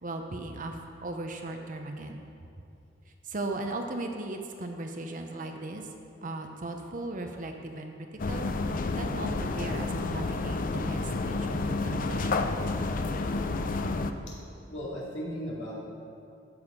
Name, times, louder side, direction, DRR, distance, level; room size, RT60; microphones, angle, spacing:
voice 1, 0.0-2.3 3.1-5.9 6.2-12.5, right 2 dB, 45° right, 4 dB, 0.9 m, -37 dB
sound 1, 8.2-14.1, left 3 dB, 45° left, 0.5 m, -30 dB
voice 2, 14.7-15.8, equal, 65° left, -5 dB, 2.8 m, -36 dB
14.5 x 6.5 x 5.2 m, 2.6 s
head